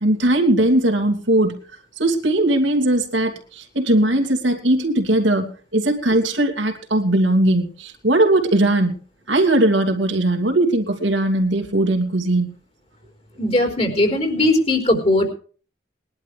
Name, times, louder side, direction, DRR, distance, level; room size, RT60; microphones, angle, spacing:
voice 1, 0.0-1.6 2.0-8.9 9.3-12.5, right 1 dB, 80° right, 3 dB, 2.7 m, -19 dB
voice 2, 13.4-15.3, left 1 dB, 35° left, 2 dB, 4.1 m, -19 dB
21.0 x 11.5 x 3.4 m, 0.40 s
head